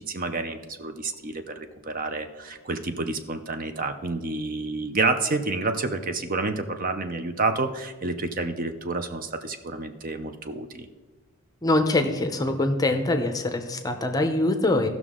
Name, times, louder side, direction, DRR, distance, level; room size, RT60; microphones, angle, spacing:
voice 1, 0.1-10.9, right 3 dB, 40° right, 8 dB, 0.5 m, -29 dB
voice 2, 11.6-14.9, left 2 dB, 15° left, 6 dB, 0.6 m, -23 dB
16.0 x 6.0 x 3.7 m, 1.3 s
head